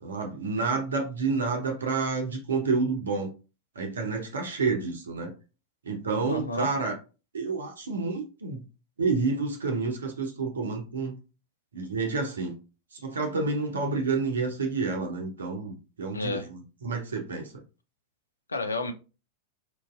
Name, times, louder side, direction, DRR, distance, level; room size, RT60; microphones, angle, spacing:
voice 1, 0.0-3.3 3.8-5.3 5.8-6.9 7.3-8.6 9.0-11.2 11.7-12.6 12.9-17.5, right 4 dB, 70° right, 0.6 m, -29 dB
voice 2, 6.2-6.7 16.1-16.5 18.5-18.9, left 2 dB, 75° left, 0.4 m, -31 dB
4.5 x 2.6 x 2.3 m
figure-of-eight pair, 90°, 0 cm